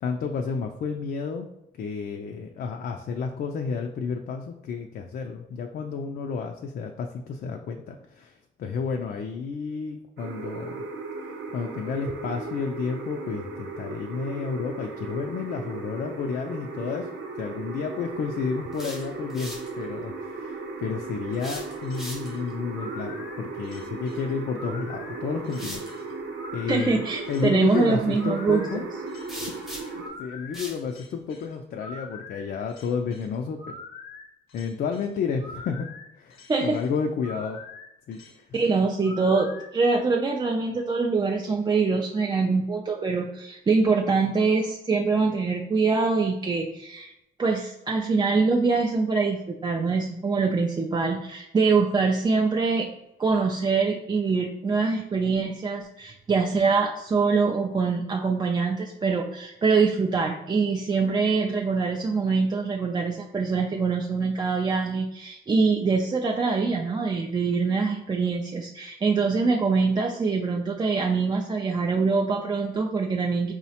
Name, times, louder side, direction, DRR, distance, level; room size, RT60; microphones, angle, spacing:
voice 1, 0.0-1.5 1.8-10.8 11.5-17.1 17.4-25.8 26.5-28.8 29.4-29.5 29.7-33.7 34.5-35.9 36.2-37.6 38.1-38.6, left 5 dB, 50° left, 3 dB, 0.4 m, -31 dB
sound 1, 10.2-30.1, right 3 dB, 65° right, 0.7 m, -36 dB
sound 2, 18.7-19.7 21.3-22.5 24.6-24.7 25.5-25.9 29.3-30.1 30.5-30.8, equal, ahead, 0.7 m, -40 dB
sound 3, 21.8-39.7, left 3 dB, 85° left, 0.7 m, -44 dB
voice 2, 26.7-28.7 36.5-36.8 38.5-47.1 47.4-52.9 53.2-73.5, right 4 dB, 20° right, 1 dB, 0.3 m, -24 dB
4.6 x 2.1 x 2.8 m, 0.88 s
cardioid pair, 90°, 20 cm